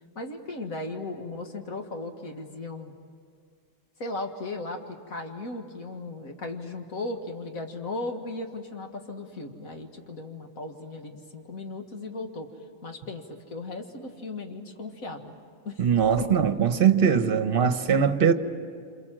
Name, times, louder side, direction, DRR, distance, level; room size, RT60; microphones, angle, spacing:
voice 1, 0.2-2.9 4.0-12.5 12.8-15.3 15.7-15.9 16.2-16.4, left 2 dB, 80° left, 2.2 m, -36 dB
voice 2, 15.8-18.3, right 7 dB, 45° right, 1.2 m, -21 dB
27.5 x 27.5 x 7.6 m
omnidirectional pair, 1.4 m